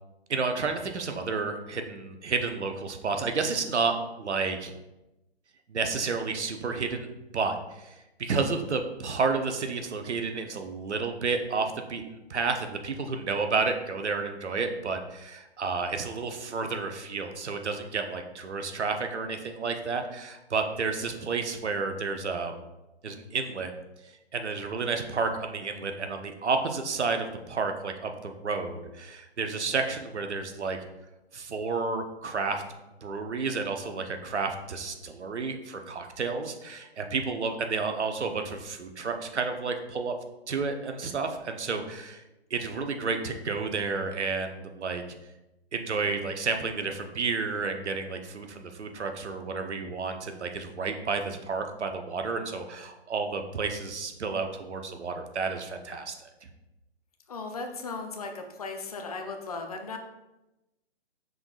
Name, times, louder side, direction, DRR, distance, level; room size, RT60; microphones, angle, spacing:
voice 1, 0.3-4.7 5.7-7.1 7.3-22.5 23.0-23.7 24.3-30.8 31.3-32.6 33.0-40.2 40.5-42.2 42.5-45.0 45.7-56.1, right 4 dB, 85° right, 6 dB, 0.7 m, -31 dB
voice 2, 57.3-60.0, left 3 dB, 35° left, 4 dB, 0.5 m, -36 dB
5.9 x 3.7 x 2.4 m, 0.98 s
figure-of-eight pair, 140°, 34 cm